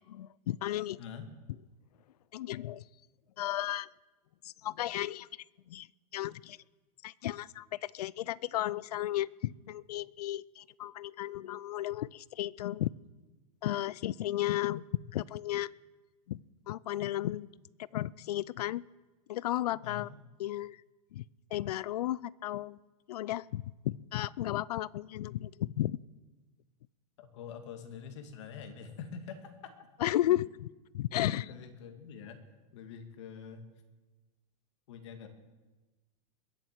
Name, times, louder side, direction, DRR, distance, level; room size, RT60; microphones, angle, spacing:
voice 1, 0.1-1.0 2.3-2.8 3.4-3.9 4.4-5.3 5.7-5.9 6.1-6.6 7.0-12.9 13.6-15.7 16.3-17.5 17.9-18.8 19.3-20.1 20.4-20.8 21.1-21.2 21.5-22.8 23.1-26.0 30.0-30.5 30.9-31.5, left 14 dB, 80° left, 23 dB, 0.5 m, -34 dB
voice 2, 1.0-1.3 19.8-20.1 27.2-29.9 31.2-32.4 32.7-33.7 34.9-35.3, left 7 dB, 50° left, 6 dB, 1.9 m, -45 dB
21.5 x 7.5 x 8.1 m, 1.2 s
supercardioid pair, 175°, 20 cm